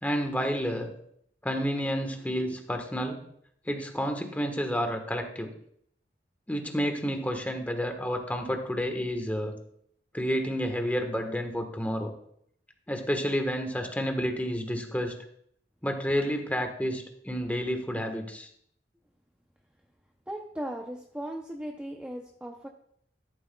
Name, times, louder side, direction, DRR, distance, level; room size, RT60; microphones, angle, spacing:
voice 1, 0.0-0.9 1.4-3.2 3.7-5.5 6.5-9.5 10.1-12.1 12.9-15.1 15.8-18.5, equal, 10° left, 4 dB, 1.3 m, -30 dB
voice 2, 20.3-22.7, right 1 dB, 5° right, 2 dB, 0.6 m, -37 dB
13.0 x 11.5 x 2.3 m, 0.68 s
head